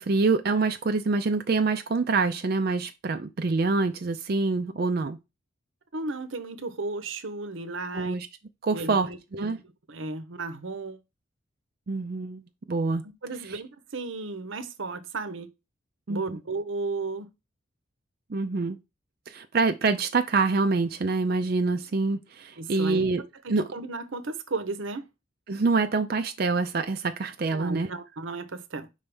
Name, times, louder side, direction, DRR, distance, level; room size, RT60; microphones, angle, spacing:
voice 1, 0.0-5.2 7.9-8.3 8.6-9.6 11.9-12.4 12.7-13.0 16.1-16.2 18.3-18.8 19.3-23.2 23.5-23.6 25.5-27.9, right 3 dB, 45° right, 0.4 m, -26 dB
voice 2, 5.9-8.2 8.7-9.6 9.9-11.0 13.0-15.5 16.1-17.3 22.6-23.1 23.4-25.1 27.5-28.9, right 3 dB, 70° right, 0.8 m, -34 dB
5.3 x 3.4 x 5.3 m
head